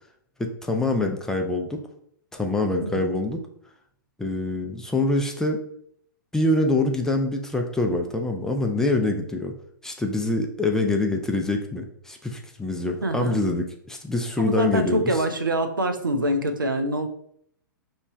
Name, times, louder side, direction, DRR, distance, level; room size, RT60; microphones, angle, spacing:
voice 1, 0.4-1.8 2.3-3.4 4.2-5.6 6.3-9.5 9.8-15.1, left 2 dB, 5° left, 3 dB, 0.3 m, -25 dB
voice 2, 13.0-13.4 14.4-17.1, right 1 dB, 80° right, 7 dB, 0.5 m, -25 dB
3.1 x 2.1 x 4.2 m, 0.67 s
figure-of-eight pair, 105°, 11 cm